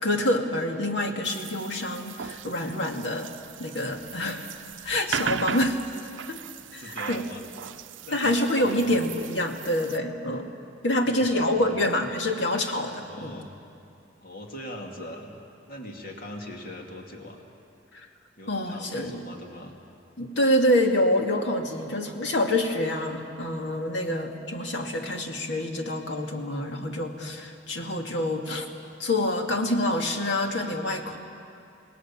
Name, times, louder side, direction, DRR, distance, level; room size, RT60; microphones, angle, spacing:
voice 1, 0.0-3.3 3.6-4.5 4.8-5.8 6.3-6.4 6.7-7.2 8.1-10.5 10.8-13.4 17.9-18.1 18.5-19.2 20.2-28.7 29.0-31.2, left 1 dB, 70° left, 3 dB, 2.2 m, -26 dB
sound 1, 1.2-10.0, right 7 dB, 85° right, 0.6 m, -37 dB
voice 2, 6.8-7.4 8.0-9.0 11.0-11.7 13.0-13.5 14.2-15.4 15.7-17.4 18.4-19.7, left 1 dB, 50° left, 1 dB, 2.6 m, -41 dB
28.0 x 18.5 x 7.3 m, 2.6 s
head